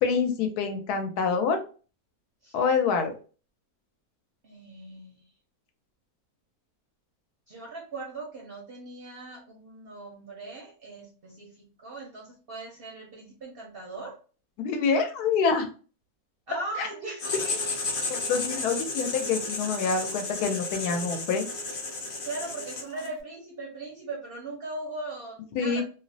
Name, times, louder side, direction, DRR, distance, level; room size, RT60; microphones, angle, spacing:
voice 1, 0.0-1.6 2.5-3.1 14.6-15.7 16.8-16.9 18.1-21.5 25.6-25.8, left 5 dB, 90° left, 6 dB, 1.1 m, -26 dB
voice 2, 4.4-5.2 7.5-14.2 16.5-17.4 22.2-25.8, right 2 dB, 60° right, -2 dB, 0.6 m, -39 dB
Writing, 17.2-23.2, left 3 dB, 55° left, 0.6 m, -33 dB
2.7 x 2.0 x 2.5 m, 0.37 s
omnidirectional pair, 1.6 m